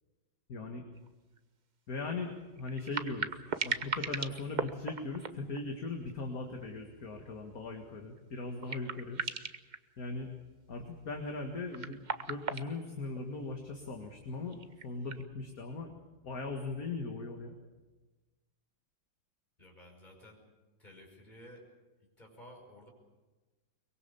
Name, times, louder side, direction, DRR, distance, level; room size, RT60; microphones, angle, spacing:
voice 1, 0.5-0.8 1.9-2.3 2.6-9.2 10.0-10.3 10.7-16.0 16.2-17.5, left 3 dB, 50° left, 2 dB, 2.3 m, -39 dB
sound 1, 1.0-1.1 1.4-1.5 2.6-6.1 6.5-6.8 7.2-7.3 8.2-8.3 8.6-9.8 11.3-13.4 14.5-15.2, right 5 dB, 45° right, 0.6 m, -38 dB
voice 2, 19.6-20.4 20.8-21.7 22.0-22.9, equal, 20° left, 0 dB, 5.9 m, -54 dB
23.5 x 22.0 x 7.0 m, 1.2 s
omnidirectional pair, 2.1 m